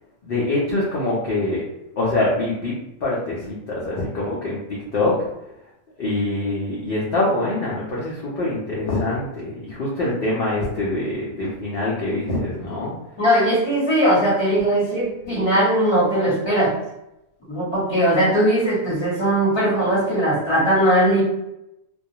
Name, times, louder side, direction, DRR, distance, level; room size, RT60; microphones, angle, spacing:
voice 1, 0.2-1.6 2.0-2.7 3.0-5.2 6.0-12.9, left 2 dB, 55° left, -6 dB, 0.7 m, -24 dB
voice 2, 13.2-16.7 17.5-21.2, right 1 dB, 20° left, -7 dB, 1.0 m, -19 dB
2.3 x 2.2 x 2.7 m, 0.87 s
omnidirectional pair, 1.4 m